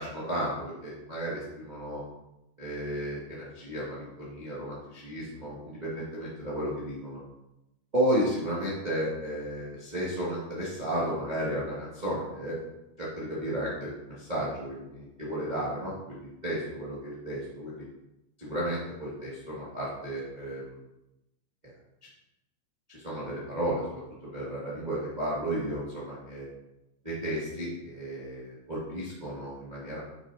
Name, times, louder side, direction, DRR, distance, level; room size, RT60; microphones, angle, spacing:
voice 1, 0.0-2.0 2.6-7.2 7.9-12.6 13.0-17.8 18.4-20.7 21.6-21.7 22.9-24.0 24.3-26.5 27.0-30.0, right 1 dB, 25° right, -7 dB, 0.9 m, -33 dB
9.5 x 7.1 x 2.8 m, 0.92 s
omnidirectional pair, 4.6 m